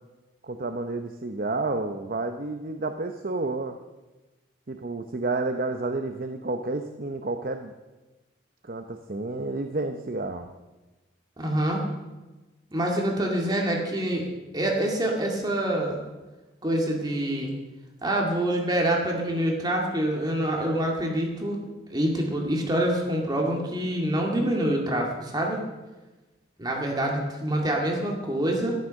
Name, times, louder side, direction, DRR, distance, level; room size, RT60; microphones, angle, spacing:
voice 1, 0.4-3.8 4.7-7.7 8.6-10.5, right 2 dB, 50° right, 6 dB, 0.8 m, -30 dB
voice 2, 11.4-11.9 12.7-14.3 14.5-16.0 16.6-17.5 18.0-21.6 21.9-25.6 26.6-28.7, right 1 dB, 20° right, 0 dB, 2.2 m, -26 dB
13.5 x 12.0 x 6.4 m, 1.1 s
head